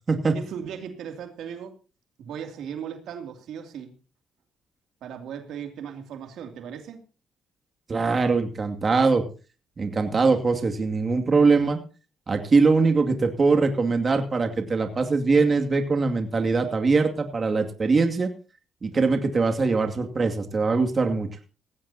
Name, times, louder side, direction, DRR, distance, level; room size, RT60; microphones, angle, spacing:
voice 1, 0.3-1.7 2.2-3.9 5.0-7.0, right 8 dB, 80° right, 5 dB, 2.7 m, -37 dB
voice 2, 7.9-9.2 9.8-11.8 12.3-18.3 18.8-21.3, right 4 dB, 35° right, 4 dB, 2.4 m, -22 dB
18.5 x 16.0 x 2.8 m, 0.35 s
cardioid pair, 90°, 0 cm